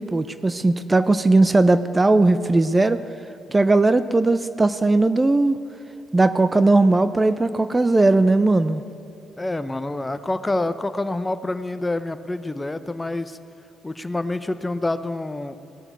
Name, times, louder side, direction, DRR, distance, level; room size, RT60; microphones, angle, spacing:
voice 1, 0.0-3.0 3.5-5.6 6.1-8.8, right 2 dB, 25° right, 12 dB, 0.6 m, -18 dB
voice 2, 9.4-13.4 13.8-15.6, left 2 dB, 20° left, 12 dB, 0.8 m, -27 dB
17.5 x 7.1 x 8.1 m, 2.8 s
hypercardioid pair, 45°, 0 cm